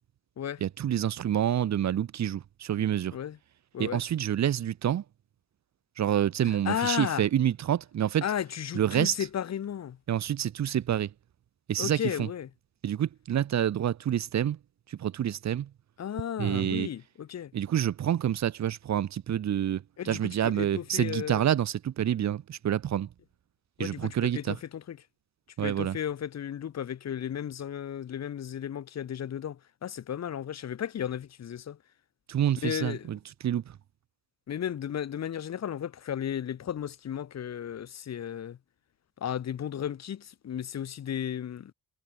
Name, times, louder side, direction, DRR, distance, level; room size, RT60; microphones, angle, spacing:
voice 1, 0.6-3.2 3.8-5.0 6.0-8.2 8.7-9.1 10.1-11.1 11.7-12.3 12.8-14.6 14.9-15.7 16.4-16.9 17.5-23.1 23.8-24.6 25.6-26.0 32.3-33.8, right 10 dB, 65° right, 2.8 m, -28 dB
voice 2, 6.7-7.2 8.2-10.0 11.8-12.5 16.0-17.5 20.0-21.4 23.8-25.0 25.6-31.8 32.6-33.1 34.5-38.6 39.2-41.7, left 9 dB, 60° left, 4.0 m, -34 dB
cardioid pair, 90°, 30 cm